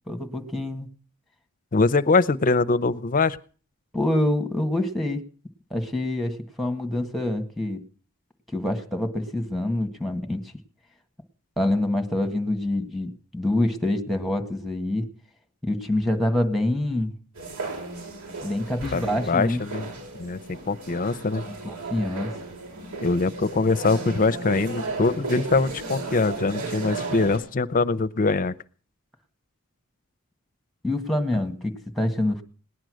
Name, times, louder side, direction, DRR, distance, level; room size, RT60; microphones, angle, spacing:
voice 1, 0.1-0.9 3.9-5.2 5.7-7.8 8.5-10.4 11.6-15.1 15.6-17.1 18.4-19.6 20.0-20.1 21.5-22.3 30.8-32.4, left 1 dB, ahead, 4 dB, 1.7 m, -26 dB
voice 2, 1.7-3.4 18.9-19.9 20.2-21.4 23.0-28.6, left 3 dB, 40° left, 12 dB, 0.6 m, -23 dB
sound 1, 17.4-27.4, right 3 dB, 80° right, 6.7 m, -35 dB
18.5 x 10.5 x 6.4 m, 0.42 s
head